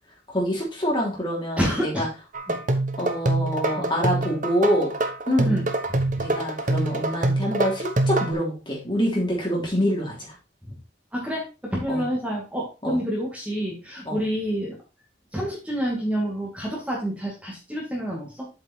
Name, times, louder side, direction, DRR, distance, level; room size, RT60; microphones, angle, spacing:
voice 1, 0.3-2.1 3.0-4.9 5.3-5.5 6.2-10.3 11.9-12.0 12.8-13.0 14.1-14.2, equal, 25° left, -3 dB, 3.4 m, -26 dB
voice 2, 1.6-2.1 2.5-2.6 3.8-3.9 5.5-5.6 5.9-6.1 10.7-10.8 11.1-14.8 15.3-18.5, equal, 5° right, -3 dB, 2.2 m, -28 dB
sound 1, 2.3-8.3, right 2 dB, 45° right, 1.1 m, -25 dB
7.9 x 5.4 x 4.4 m, 0.30 s
head